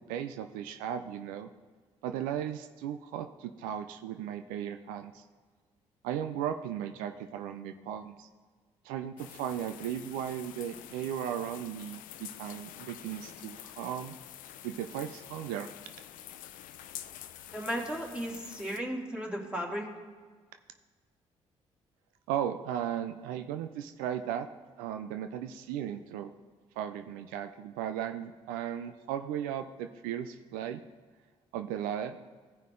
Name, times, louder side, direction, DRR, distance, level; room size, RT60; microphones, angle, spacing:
voice 1, 0.1-1.5 2.0-5.2 6.0-8.3 8.8-14.1 14.6-15.7 22.3-24.5 24.8-26.3 26.8-30.8 31.5-32.2, right 10 dB, 80° right, 8 dB, 0.4 m, -36 dB
sound 1, 9.2-18.8, left 12 dB, 70° left, 0.5 m, -47 dB
voice 2, 17.5-19.9, equal, 5° right, -2 dB, 3.0 m, -35 dB
15.5 x 5.5 x 3.7 m, 1.5 s
hypercardioid pair, 50°, 14 cm